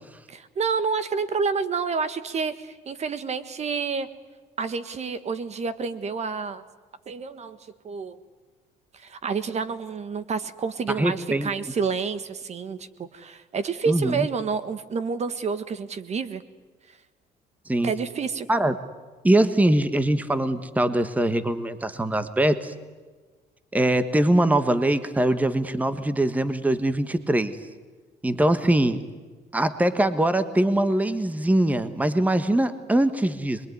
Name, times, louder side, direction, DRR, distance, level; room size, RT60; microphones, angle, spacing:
voice 1, 0.3-4.1 4.6-6.6 7.1-7.6 7.8-8.2 8.9-16.4 17.8-18.5, right 5 dB, 40° right, 12 dB, 1.6 m, -29 dB
voice 2, 11.0-11.5 13.9-14.2 17.7-17.9 18.5-18.8 19.2-22.7 23.7-27.6 28.2-29.0 29.5-33.6, right 1 dB, 10° right, 11 dB, 1.4 m, -22 dB
26.5 x 22.5 x 9.5 m, 1.4 s
cardioid pair, 110°, 17 cm